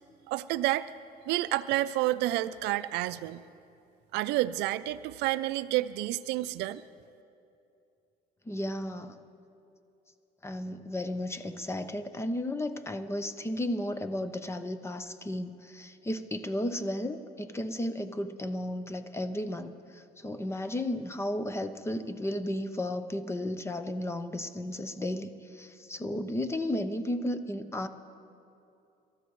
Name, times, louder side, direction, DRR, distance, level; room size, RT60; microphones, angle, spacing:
voice 1, 0.3-0.9 1.3-3.5 4.1-6.8, right 16 dB, 90° right, 14 dB, 0.4 m, -29 dB
voice 2, 8.5-9.2 10.4-27.9, left 1 dB, 15° left, 10 dB, 0.7 m, -34 dB
27.0 x 13.5 x 3.1 m, 2.7 s
cardioid pair, 110°, 17 cm